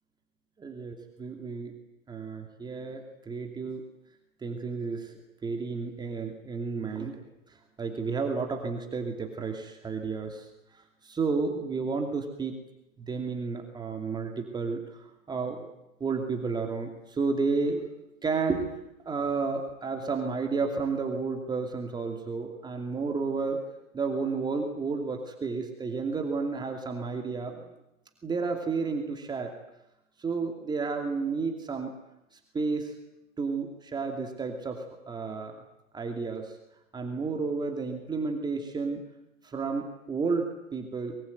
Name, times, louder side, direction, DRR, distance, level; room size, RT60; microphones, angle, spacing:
voice 1, 0.6-0.9 1.2-1.7 2.1-3.8 4.4-5.1 5.4-7.2 7.8-10.5 10.7-12.6 13.0-15.0 15.3-15.7 16.0-17.9 18.2-18.7 19.1-23.6 23.9-27.6 28.2-29.5 30.2-31.9 32.5-32.9 33.4-35.6 35.9-36.6 36.9-39.0 39.4-41.2, right 4 dB, 10° right, 3 dB, 2.6 m, -31 dB
24.0 x 23.0 x 9.3 m, 0.88 s
hypercardioid pair, 125°, 40 cm